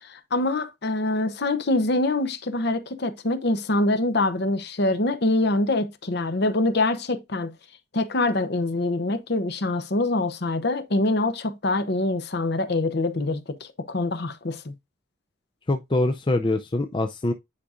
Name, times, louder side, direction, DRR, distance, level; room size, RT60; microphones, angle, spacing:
voice 1, 0.0-7.5 7.9-14.7, left 2 dB, 50° left, 0.8 m, -25 dB
voice 2, 15.7-17.3, left 2 dB, 25° left, 0.4 m, -24 dB
9.7 x 4.9 x 2.5 m
head